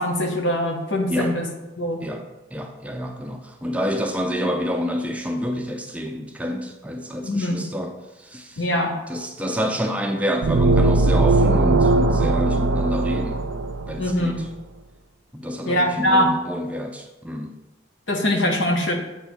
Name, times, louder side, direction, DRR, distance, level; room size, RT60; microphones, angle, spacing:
voice 1, 0.0-1.5 1.8-2.0 7.2-7.7 8.6-8.9 14.0-14.4 15.7-16.3 18.1-18.9, equal, 75° left, 3 dB, 1.1 m, -22 dB
voice 2, 2.5-8.7 9.1-13.4 13.9-14.5 15.3-17.5, equal, 5° right, 4 dB, 0.4 m, -28 dB
sound 1, 10.4-14.1, right 2 dB, 80° right, 0.5 m, -19 dB
7.9 x 3.4 x 6.1 m, 1.0 s
head